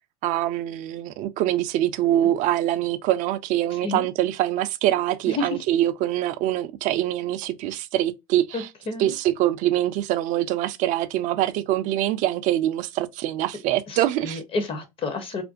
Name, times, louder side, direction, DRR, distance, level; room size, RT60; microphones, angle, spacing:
voice 1, 0.2-8.7 9.0-14.4, right 13 dB, 45° right, 0.4 m, -24 dB
voice 2, 8.5-9.1 13.9-15.4, left 3 dB, 30° left, 0.7 m, -30 dB
2.5 x 2.2 x 2.4 m
supercardioid pair, 110°, 19 cm